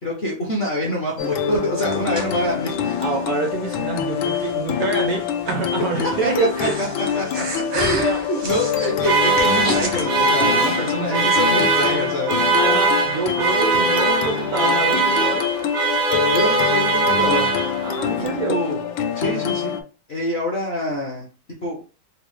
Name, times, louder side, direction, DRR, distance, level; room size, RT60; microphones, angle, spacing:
voice 1, 0.0-2.7 6.2-6.3 6.6-8.0 8.3-12.4 16.3-17.5 18.2-18.8 19.1-19.7 20.1-21.3 21.6-21.8, equal, 55° left, -2 dB, 0.7 m, -26 dB
sound 1, 1.2-19.8, left 8 dB, 85° left, 1.4 m, -25 dB
Breathing, 1.5-10.1, right 2 dB, 45° right, 0.6 m, -32 dB
voice 2, 3.0-6.8 7.7-8.3 10.6-11.3 12.6-15.5 17.8-18.6, right 3 dB, 70° right, 3 dB, 0.8 m, -26 dB
sound 2, 9.0-18.0, right 3 dB, 90° right, 1.7 m, -20 dB
4.2 x 2.1 x 3.1 m, 0.36 s
omnidirectional pair, 2.0 m